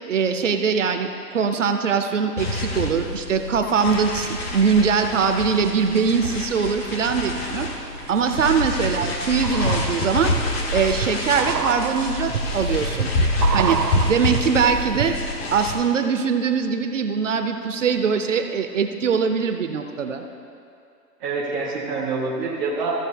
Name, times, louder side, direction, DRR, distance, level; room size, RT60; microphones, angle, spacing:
voice 1, 0.1-7.7 8.1-10.3 10.7-13.1 13.5-13.8 14.1-15.1 15.5-20.2, right 6 dB, 50° right, 6 dB, 0.6 m, -22 dB
sound 1, 2.4-15.7, left 2 dB, 40° left, 1.0 m, -27 dB
sound 2, 6.4-7.1 7.6-15.5 15.7-15.8, right 7 dB, 90° right, 0.7 m, -30 dB
voice 2, 21.2-22.9, right 4 dB, ahead, -17 dB, 0.5 m, -26 dB
14.5 x 6.7 x 3.4 m, 2.5 s
hypercardioid pair, 155°, 49 cm